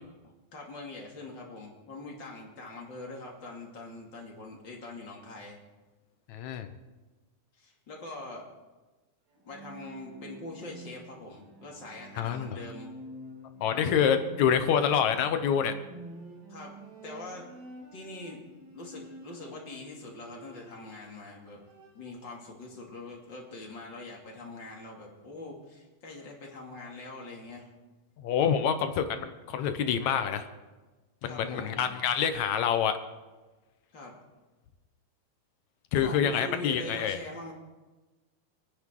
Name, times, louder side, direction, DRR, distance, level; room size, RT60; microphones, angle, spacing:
voice 1, 0.5-5.6 7.5-8.5 9.4-12.9 16.5-16.7 17.0-17.5 17.9-18.4 18.7-21.6 21.9-27.7 31.3-31.8 33.9-34.2 35.9-37.5, left 2 dB, 35° left, -1 dB, 2.9 m, -43 dB
voice 2, 6.3-6.7 12.2-12.6 13.6-15.8 28.2-30.5 31.2-33.0 35.9-37.2, left 8 dB, 70° left, 8 dB, 2.1 m, -27 dB
Bowed string instrument, 9.3-21.1 21.4-22.2, right 1 dB, 40° right, 2.5 m, -49 dB
28.5 x 9.8 x 3.8 m, 1.2 s
omnidirectional pair, 3.8 m